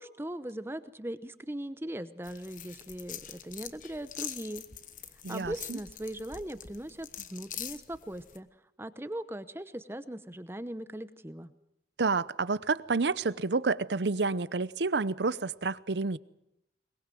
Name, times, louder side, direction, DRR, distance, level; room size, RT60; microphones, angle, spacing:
voice 1, 0.0-4.6 5.3-8.5 8.8-11.5, right 1 dB, 15° right, 13 dB, 0.9 m, -39 dB
sound 1, 2.2-8.4, left 10 dB, 50° left, 1.2 m, -44 dB
voice 2, 5.2-5.8 12.0-16.2, right 4 dB, 80° right, 17 dB, 0.8 m, -29 dB
22.5 x 22.0 x 7.7 m, 0.84 s
head